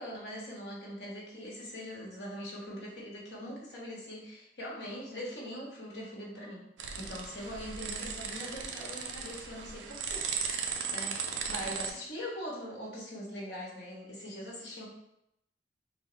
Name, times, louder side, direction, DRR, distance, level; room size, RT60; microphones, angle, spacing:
voice 1, 0.0-6.6 7.0-10.6 10.9-11.2 11.5-14.9, equal, 70° left, -4 dB, 1.1 m, -42 dB
sound 1, 6.8-11.9, right 6 dB, 85° right, 0.4 m, -37 dB
3.8 x 2.1 x 3.8 m, 0.79 s
head